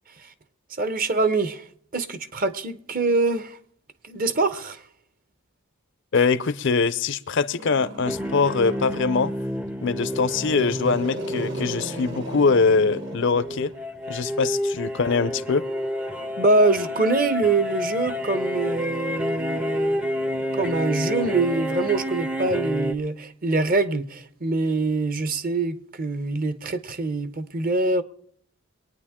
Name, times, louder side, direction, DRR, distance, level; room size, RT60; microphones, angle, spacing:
voice 1, 0.8-1.6 1.9-3.6 4.1-4.8 16.4-20.1 20.6-28.0, right 3 dB, 40° right, 0.9 m, -24 dB
voice 2, 6.1-9.3 9.8-13.7 14.1-15.7, left 4 dB, 55° left, 0.6 m, -23 dB
Growling, 7.6-9.3 9.9-14.0 15.0-21.5, right 2 dB, 55° right, 1.7 m, -41 dB
sound 1, 8.0-22.9, left 1 dB, 5° right, 0.6 m, -29 dB
23.0 x 9.3 x 3.7 m
head